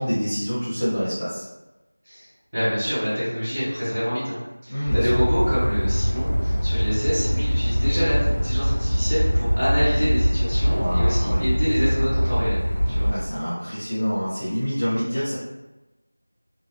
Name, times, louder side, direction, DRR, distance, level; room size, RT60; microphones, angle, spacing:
voice 1, 0.0-1.5 4.7-5.2 10.8-11.5 13.1-15.4, equal, 15° left, -15 dB, 0.5 m, -27 dB
voice 2, 2.5-12.6 12.9-13.1, equal, 20° right, -15 dB, 1.4 m, -26 dB
sound 1, 4.9-13.1, equal, 60° left, 0.8 m, -22 dB
2.4 x 2.3 x 2.2 m, 1.0 s
figure-of-eight pair, 180°, 0 cm